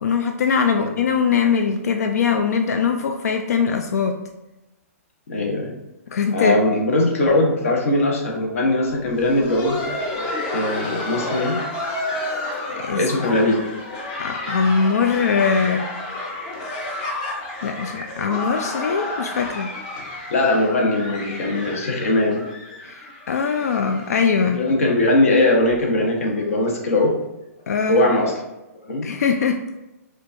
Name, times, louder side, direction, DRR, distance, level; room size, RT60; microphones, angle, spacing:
voice 1, 0.0-4.2 6.1-6.6 12.8-13.0 14.2-15.9 17.6-19.7 22.8-24.6 27.7-28.1 29.0-29.6, left 6 dB, 80° left, 5 dB, 0.4 m, -21 dB
voice 2, 5.3-5.8 6.3-9.8 10.5-11.6 12.9-13.6 20.3-22.4 24.5-27.2 27.9-28.3 28.9-29.1, left 2 dB, 60° left, 0 dB, 0.9 m, -20 dB
Laughter, 9.0-24.7 25.0-25.1 25.7-25.8 26.3-26.5 27.6-27.7, left 2 dB, 25° left, 0.6 m, -31 dB
4.4 x 2.4 x 2.5 m, 0.99 s
hypercardioid pair, 175°, 8 cm